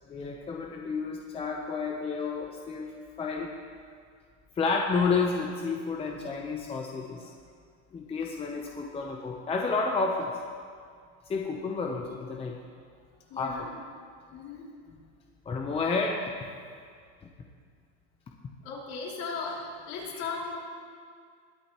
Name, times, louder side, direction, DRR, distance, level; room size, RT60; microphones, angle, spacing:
voice 1, 0.1-2.9 3.2-3.5 4.6-7.3 7.9-10.3 11.3-12.6 13.3-13.7 15.5-16.2, left 4 dB, 15° left, 0 dB, 0.7 m, -30 dB
voice 2, 13.3-13.8 14.3-14.7 18.6-20.6, left 4 dB, 50° left, -3 dB, 3.0 m, -37 dB
21.0 x 8.6 x 3.0 m, 2.1 s
supercardioid pair, 135°, 36 cm